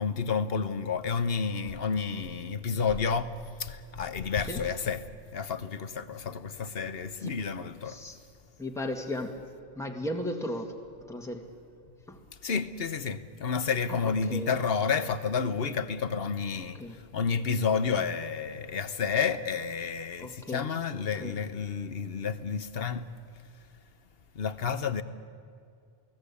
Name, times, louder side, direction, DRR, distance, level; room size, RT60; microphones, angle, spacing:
voice 1, 0.0-3.3 3.6-5.1 5.3-8.0 12.4-23.1 24.3-25.0, left 6 dB, 70° left, 1.3 m, -30 dB
voice 2, 7.9-8.2 8.6-9.4 9.8-10.7 11.0-11.5 12.1-12.2 13.9-14.5 16.7-17.0 20.2-20.7 21.2-21.3, left 1 dB, 5° left, 1.9 m, -35 dB
29.0 x 19.0 x 8.5 m
omnidirectional pair, 1.0 m